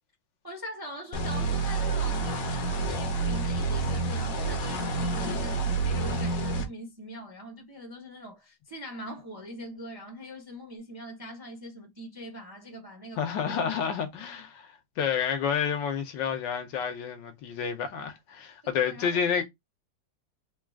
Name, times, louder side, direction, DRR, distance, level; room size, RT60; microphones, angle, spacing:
voice 1, 0.4-13.6 18.6-19.4, equal, 25° right, 0.5 m, -43 dB
sound 1, 1.1-6.6, right 3 dB, 55° left, 1.1 m, -28 dB
voice 2, 13.2-14.7 15.0-19.4, left 7 dB, 75° left, 1.4 m, -29 dB
3.8 x 2.4 x 3.4 m
omnidirectional pair, 2.1 m